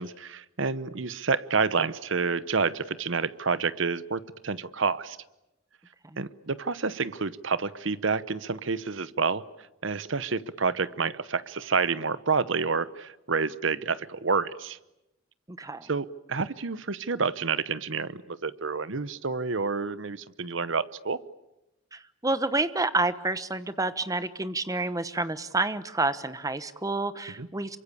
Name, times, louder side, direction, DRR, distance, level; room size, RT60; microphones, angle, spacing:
voice 1, 0.0-5.2 6.2-9.4 9.8-14.8 15.8-21.2 27.4-27.5, right 4 dB, 65° right, 16 dB, 1.0 m, -29 dB
voice 2, 15.5-15.9 21.9-27.8, right 2 dB, 15° right, 13 dB, 1.0 m, -29 dB
27.0 x 24.0 x 8.6 m, 0.93 s
head